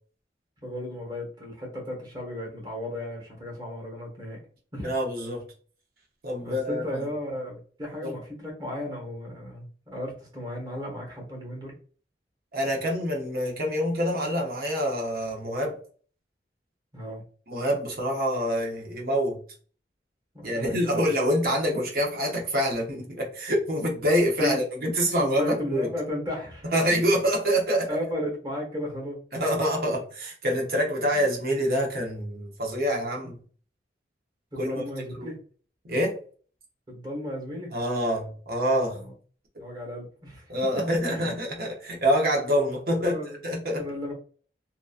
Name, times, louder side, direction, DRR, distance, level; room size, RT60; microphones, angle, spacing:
voice 1, 0.6-4.4 4.7-4.9 6.4-11.7 16.9-17.2 20.3-20.9 24.4-24.5 25.2-26.7 27.9-29.2 31.2-31.3 34.5-35.4 36.9-37.7 38.9-39.1 39.6-40.4 41.0-41.3 42.9-43.4 43.7-44.1, left 1 dB, 25° right, 1.0 m, -34 dB
voice 2, 4.8-5.4 6.2-7.0 8.0-8.1 12.5-15.8 17.5-19.4 20.4-25.9 26.6-27.9 29.3-33.4 34.6-34.8 35.2-35.3 35.8-36.2 37.7-39.0 40.5-43.1 43.4-43.8, equal, 55° right, 0.8 m, -26 dB
2.8 x 2.4 x 2.4 m
head